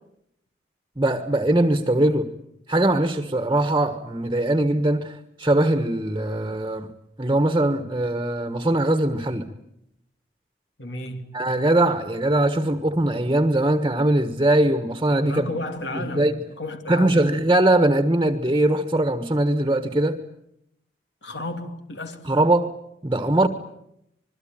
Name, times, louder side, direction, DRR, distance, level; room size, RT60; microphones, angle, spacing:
voice 1, 1.0-2.3 2.7-6.9 7.2-9.5 11.3-15.5 15.9-16.4 16.9-20.2 22.2-22.7 23.0-23.5, right 1 dB, 20° right, 1.4 m, -21 dB
voice 2, 10.8-11.4 15.2-16.3 16.6-17.3 21.2-22.3, left 1 dB, 85° left, 2.8 m, -33 dB
26.5 x 22.0 x 9.0 m
head